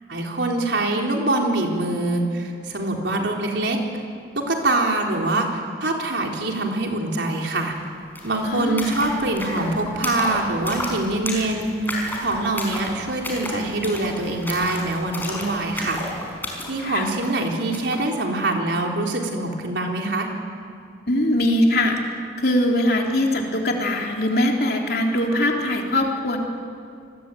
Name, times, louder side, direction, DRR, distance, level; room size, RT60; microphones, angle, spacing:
voice 1, 0.1-3.8 4.4-7.7 8.2-16.0 16.7-20.3, right 2 dB, 75° right, 1 dB, 4.0 m, -24 dB
sound 1, 7.5-7.6 7.9-18.0, left 1 dB, 10° left, 5.3 m, -33 dB
voice 2, 8.4-9.0 16.8-17.1 21.1-22.0 22.4-26.4, left 1 dB, 60° left, 1 dB, 3.6 m, -21 dB
28.5 x 20.5 x 9.3 m, 2.3 s
head